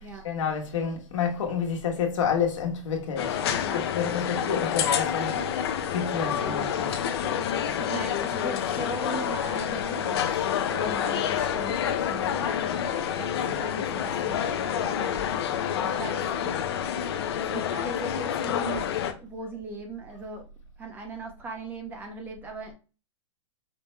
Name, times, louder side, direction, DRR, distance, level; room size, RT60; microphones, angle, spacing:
voice 1, 0.2-3.4 3.7-6.9, left 6 dB, 80° left, 1.3 m, -29 dB
sound 1, 3.2-19.1, left 9 dB, 55° left, 0.6 m, -28 dB
voice 2, 6.3-6.7 7.8-10.3 10.7-12.6 12.9-15.2 15.8-16.2 17.5-20.5 20.8-22.7, right 3 dB, 10° right, 0.7 m, -39 dB
5.2 x 2.1 x 3.1 m
supercardioid pair, 165°, 16 cm